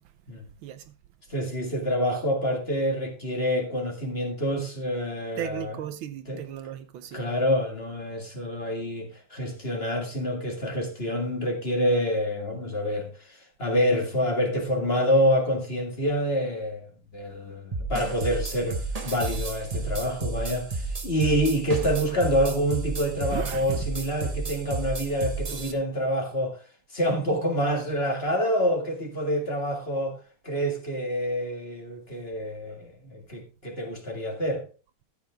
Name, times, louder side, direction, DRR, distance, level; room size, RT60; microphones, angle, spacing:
voice 1, 1.3-5.7 6.3-6.4 7.1-26.6 26.9-30.2 30.4-34.6, equal, 30° left, 2.1 m, -27 dB
voice 2, 5.4-7.2 23.3-23.9, right 10 dB, 75° right, 1.5 m, -35 dB
sound 1, 17.7-25.7, right 3 dB, 30° right, 0.7 m, -32 dB
13.0 x 8.1 x 3.5 m
omnidirectional pair, 2.3 m